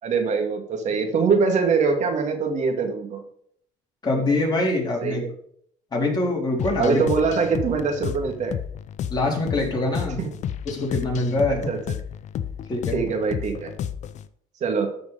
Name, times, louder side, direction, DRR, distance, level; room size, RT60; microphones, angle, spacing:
voice 1, 0.0-3.2 5.0-5.3 6.8-8.6 10.2-10.3 11.5-11.8 12.9-13.7 14.6-14.9, right 5 dB, 55° right, 4 dB, 2.2 m, -23 dB
voice 2, 4.0-5.2 5.9-7.0 9.1-10.2 10.7-11.7 12.7-13.0, left 2 dB, 30° left, -2 dB, 4.2 m, -24 dB
sound 1, 6.6-14.3, left 9 dB, 55° left, 0.7 m, -32 dB
13.0 x 5.2 x 5.2 m, 0.64 s
cardioid pair, 100°, 15 cm